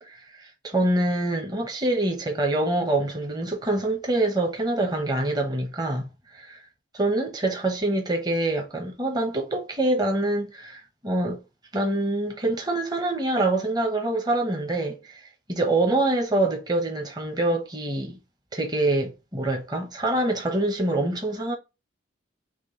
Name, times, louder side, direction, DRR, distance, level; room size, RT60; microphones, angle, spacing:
voice 1, 0.1-6.6 7.0-11.4 11.7-18.2 18.5-21.5, right 2 dB, 20° right, 1.0 m, -25 dB
6.0 x 2.3 x 3.1 m
head